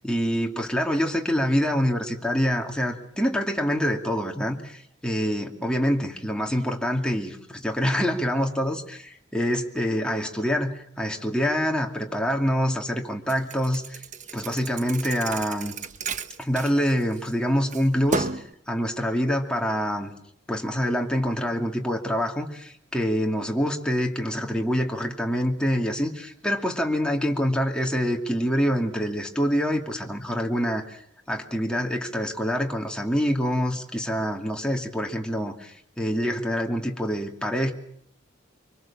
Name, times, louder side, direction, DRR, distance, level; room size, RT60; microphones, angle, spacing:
voice 1, 0.0-14.0 14.3-15.7 16.4-20.1 20.5-31.0 31.3-37.7, equal, 5° left, 1 dB, 2.6 m, -26 dB
Thump thud, 13.3-17.3 17.7-18.5, right 4 dB, 40° right, 1.1 m, -33 dB
25.0 x 25.0 x 7.3 m, 0.70 s
head